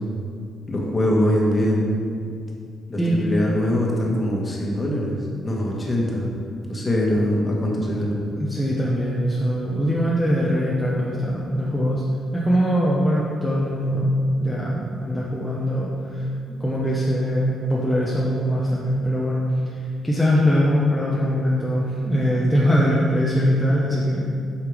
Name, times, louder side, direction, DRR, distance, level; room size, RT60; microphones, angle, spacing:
voice 1, 0.7-1.8 2.9-5.1 5.4-6.3 6.7-8.2, left 1 dB, 20° left, -3 dB, 1.5 m, -22 dB
voice 2, 8.3-12.0 12.3-14.1 14.4-19.4 19.7-24.3, equal, 5° left, -7 dB, 0.9 m, -22 dB
8.1 x 5.8 x 5.0 m, 2.3 s
cardioid pair, 150°, 0 cm